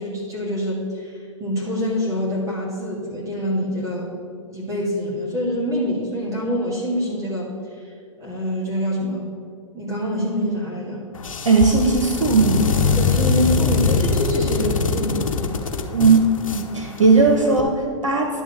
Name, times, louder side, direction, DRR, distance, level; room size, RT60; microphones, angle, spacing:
voice 1, 0.0-4.1 4.5-9.3 9.7-11.1 13.0-15.4 15.7-15.8, equal, 20° right, -5 dB, 2.3 m, -25 dB
sound 1, 11.1-17.6, left 4 dB, 85° left, 0.9 m, -23 dB
voice 2, 11.4-12.7 15.9-16.2 16.5-18.4, right 4 dB, 85° right, 2 dB, 1.2 m, -17 dB
11.0 x 3.7 x 7.2 m, 2.3 s
hypercardioid pair, 115°, 17 cm